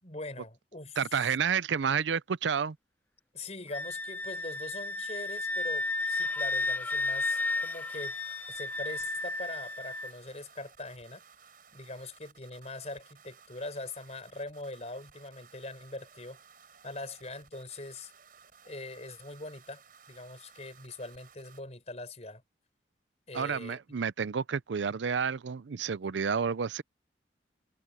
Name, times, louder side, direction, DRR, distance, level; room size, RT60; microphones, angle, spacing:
voice 1, 0.0-1.0 3.3-8.2 8.5-11.2 11.7-16.4 16.8-18.1 18.6-19.8 20.1-22.4 23.3-23.8, left 2 dB, 35° left, 4.8 m, -42 dB
voice 2, 1.0-2.8 23.3-26.8, right 6 dB, 85° right, 0.5 m, -30 dB
Wind instrument woodwind instrument, 3.7-10.1, left 3 dB, 10° left, 0.6 m, -33 dB
sound 1, 6.8-21.6, right 6 dB, 50° right, 6.6 m, -58 dB
head